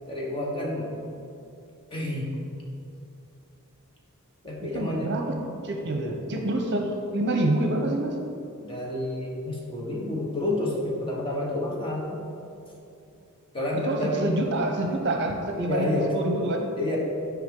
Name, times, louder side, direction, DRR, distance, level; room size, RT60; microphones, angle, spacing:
voice 1, 0.1-1.0 1.9-2.3 4.4-5.2 8.6-12.2 13.5-14.3 15.6-16.2 16.8-17.0, left 1 dB, 25° left, -3 dB, 1.2 m, -29 dB
voice 2, 4.6-8.2 13.7-16.7, right 1 dB, 50° right, 3 dB, 0.8 m, -27 dB
9.0 x 4.9 x 3.8 m, 2.6 s
head